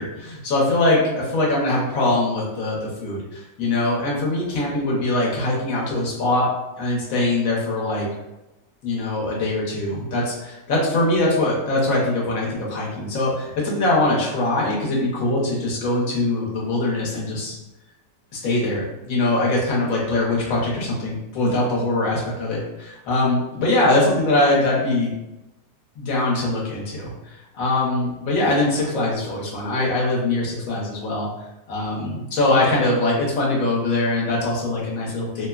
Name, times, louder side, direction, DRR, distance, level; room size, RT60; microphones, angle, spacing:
voice 1, 0.0-6.5 6.8-8.1 8.8-17.5 18.3-25.1 26.0-31.3 31.7-35.5, left 2 dB, 60° left, -4 dB, 1.1 m, -22 dB
2.9 x 2.1 x 2.3 m, 0.97 s
omnidirectional pair, 1.8 m